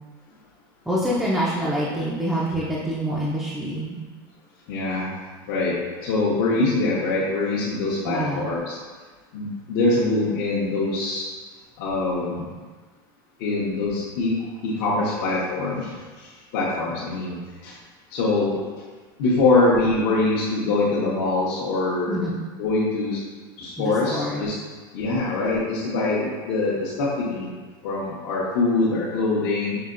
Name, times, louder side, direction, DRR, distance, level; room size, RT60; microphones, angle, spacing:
voice 1, 0.9-4.0 8.0-8.6 22.1-22.4 23.8-24.5, equal, ahead, -7 dB, 0.4 m, -26 dB
voice 2, 4.7-5.1 5.5-8.8 9.3-11.3 11.8-12.5 13.4-14.3 14.6-17.8 18.1-18.6 19.2-22.2 22.6-23.2 23.6-24.5 24.9-27.5 27.8-29.8, left 3 dB, 65° left, -7 dB, 0.8 m, -24 dB
5.5 x 2.8 x 2.5 m, 1.4 s
supercardioid pair, 140°, 12 cm